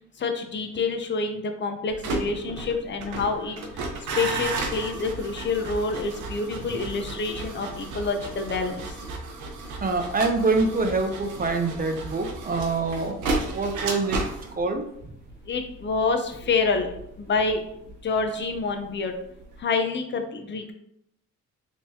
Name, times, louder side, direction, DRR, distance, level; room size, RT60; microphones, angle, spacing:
voice 1, 0.2-3.8 4.2-8.9 15.5-16.9 17.2-17.6 18.0-19.2 19.6-20.7, left 4 dB, 40° left, 5 dB, 0.6 m, -27 dB
sound 1, 1.9-18.9 19.2-19.6, right 3 dB, 85° right, 0.8 m, -34 dB
voice 2, 9.8-14.2 14.6-14.8, right 3 dB, 30° right, 5 dB, 0.6 m, -25 dB
3.6 x 3.0 x 2.8 m, 0.76 s
cardioid pair, 90°, 30 cm